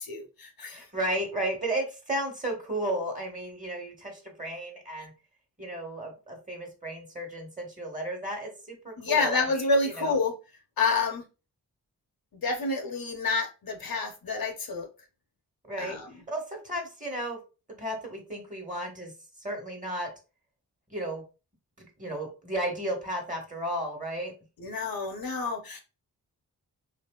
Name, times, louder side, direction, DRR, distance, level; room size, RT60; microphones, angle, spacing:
voice 1, 0.0-0.8 9.0-10.3 10.8-11.2 12.4-14.9 15.8-16.1 24.6-25.8, left 3 dB, 60° left, 4 dB, 0.8 m, -28 dB
voice 2, 0.7-5.1 5.6-9.7 10.0-10.1 15.6-16.0 16.3-17.4 17.8-19.1 19.4-20.1 20.9-21.2 21.8-24.3, right 1 dB, 20° right, 2 dB, 1.4 m, -34 dB
3.1 x 2.5 x 2.3 m, 0.31 s
cardioid pair, 40°, 40 cm